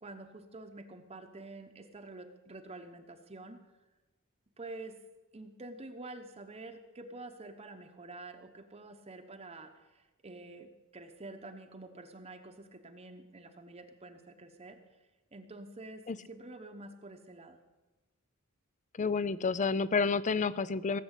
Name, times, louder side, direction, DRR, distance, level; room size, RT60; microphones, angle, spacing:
voice 1, 0.0-3.6 4.6-4.9 5.3-14.8 15.3-17.6, right 2 dB, 30° right, 5 dB, 0.9 m, -48 dB
voice 2, 19.0-21.0, left 4 dB, 35° left, 17 dB, 0.5 m, -29 dB
17.5 x 7.6 x 8.1 m, 1.1 s
head